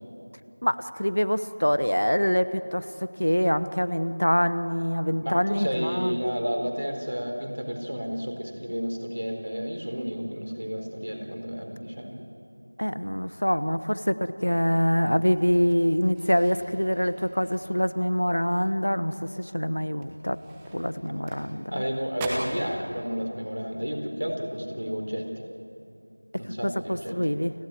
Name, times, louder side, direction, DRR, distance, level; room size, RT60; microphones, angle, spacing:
voice 1, 0.6-6.1 12.8-20.4 20.7-21.7 26.6-27.5, equal, 75° left, 14 dB, 1.0 m, -25 dB
voice 2, 5.2-12.2 21.7-25.4 26.4-27.3, equal, 60° right, 3 dB, 4.2 m, -31 dB
sound 1, 15.5-18.1 18.5-18.8 19.2-19.3 19.9-21.8 22.1-22.7, right 2 dB, 5° right, 0.5 m, -40 dB
29.0 x 12.0 x 9.4 m, 2.7 s
figure-of-eight pair, 180°, 0 cm